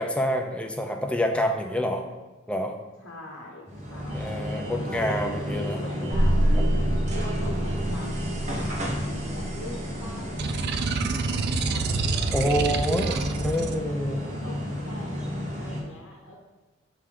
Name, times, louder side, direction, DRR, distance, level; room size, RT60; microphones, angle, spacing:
voice 1, 0.0-2.0 2.5-2.7 4.1-5.8 6.1-6.2 12.3-14.2, equal, 5° left, 3 dB, 0.5 m, -27 dB
voice 2, 3.0-4.4 5.3-6.4 7.1-12.1 13.0-13.9 14.4-16.4, left 2 dB, 75° left, -1 dB, 1.0 m, -43 dB
sound 1, 3.7-15.8, equal, 35° right, 1.0 m, -32 dB
sound 2, 6.1-10.4, right 1 dB, 75° right, 0.7 m, -26 dB
sound 3, 10.4-13.8, right 4 dB, 55° right, 0.4 m, -28 dB
5.7 x 3.7 x 4.9 m, 1.2 s
head